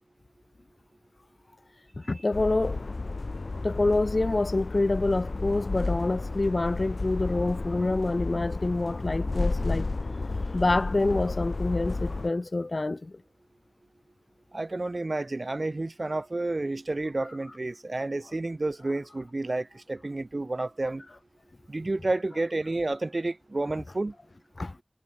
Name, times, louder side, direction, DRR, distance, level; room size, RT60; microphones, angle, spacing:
voice 1, 2.0-2.9 3.6-9.9 10.5-13.2 24.6-24.8, left 2 dB, 65° left, 1.0 m, -27 dB
sound 1, 2.3-12.3, left 3 dB, 90° left, 1.8 m, -32 dB
voice 2, 14.5-21.0 21.7-24.1, right 2 dB, 60° right, 2.4 m, -30 dB
wide cardioid pair, 45°, 0 cm